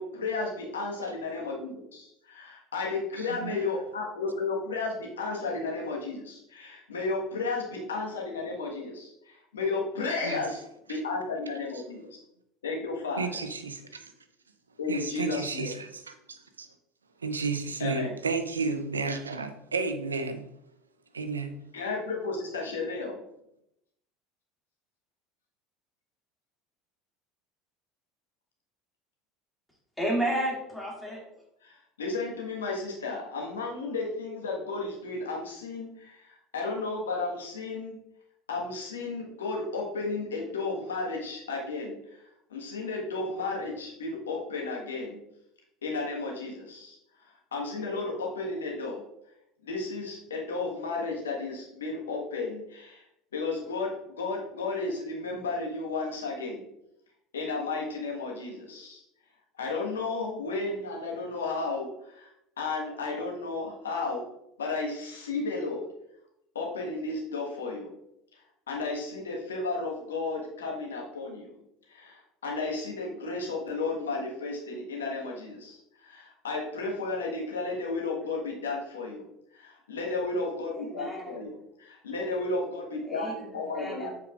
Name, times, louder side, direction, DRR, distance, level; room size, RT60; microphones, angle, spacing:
voice 1, 0.0-10.6 10.9-12.1 12.6-13.3 14.8-15.7 17.8-18.1 21.7-23.2 31.6-38.0 38.5-42.0 42.5-45.2 45.8-47.0 47.5-49.0 49.6-53.0 53.3-56.7 57.3-59.0 59.6-62.3 62.6-64.3 64.6-65.9 66.5-67.9 68.7-71.6 71.9-79.3 79.5-81.5 81.8-84.1, left 3 dB, 80° left, -1 dB, 1.4 m, -33 dB
voice 2, 3.2-3.6 10.2-10.4 11.7-11.8 13.2-14.1 14.9-16.7 17.2-20.4 21.1-21.6, right 4 dB, 90° right, 9 dB, 0.5 m, -32 dB
voice 3, 30.0-31.2 80.7-81.4 83.0-83.5 83.7-84.1, right 1 dB, 5° left, -3 dB, 2.3 m, -31 dB
7.3 x 5.3 x 2.4 m, 0.81 s
hypercardioid pair, 70°, 0 cm